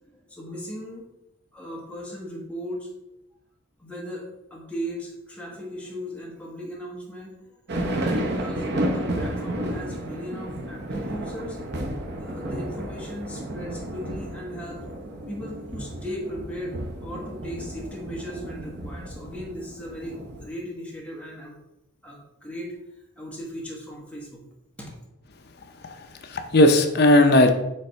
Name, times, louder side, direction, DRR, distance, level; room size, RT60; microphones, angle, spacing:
voice 1, 0.1-1.0 1.5-2.9 3.8-4.2 4.5-7.4 8.0-11.6 12.2-14.8 15.3-21.6 22.0-22.7 23.2-24.4 24.8-24.9, equal, 5° left, -3 dB, 1.2 m, -37 dB
sound 1, 7.7-20.4, right 1 dB, 55° right, 0.8 m, -32 dB
voice 2, 25.8-27.5, left 1 dB, 50° left, 6 dB, 0.6 m, -17 dB
6.5 x 3.3 x 4.4 m, 0.90 s
head